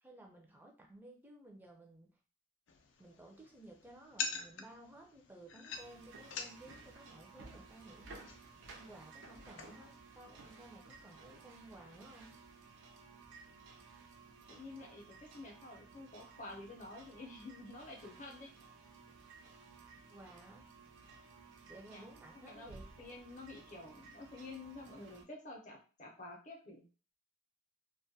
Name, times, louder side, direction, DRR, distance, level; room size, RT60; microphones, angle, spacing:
voice 1, 0.0-2.1 3.0-8.5 8.7-12.3 20.1-20.6 21.7-22.8, right 1 dB, 10° right, 1 dB, 0.4 m, -56 dB
sound 1, 2.7-10.0, left 5 dB, 80° left, 0.4 m, -47 dB
sound 2, 5.7-25.2, right 4 dB, 80° right, 0.5 m, -56 dB
voice 2, 14.5-18.5 21.9-22.1 22.3-22.7 23.0-26.8, left 2 dB, 40° left, 0 dB, 0.6 m, -50 dB
2.2 x 2.1 x 2.6 m, 0.36 s
head